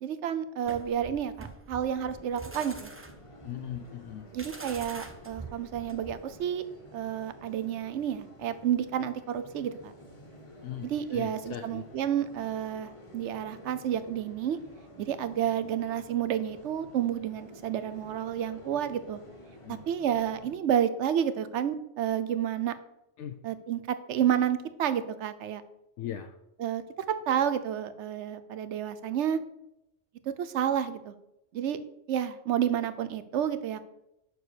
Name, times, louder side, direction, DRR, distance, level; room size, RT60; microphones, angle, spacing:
voice 1, 0.0-2.9 4.3-6.6 6.9-9.9 10.8-14.6 15.0-19.2 19.7-22.7 23.4-25.6 26.6-26.8 27.1-29.4 30.3-31.1 31.5-31.8 32.1-33.9, right 9 dB, 75° right, 12 dB, 0.9 m, -30 dB
sound 1, 0.6-6.3, right 3 dB, 15° right, 0.5 m, -45 dB
sound 2, 1.8-20.5, left 1 dB, 25° left, 1.3 m, -51 dB
voice 2, 3.4-4.3 10.6-11.8 19.6-19.8 23.2-23.4 26.0-26.3, left 9 dB, 80° left, 6 dB, 0.9 m, -39 dB
6.6 x 4.6 x 6.7 m, 0.84 s
omnidirectional pair, 1.2 m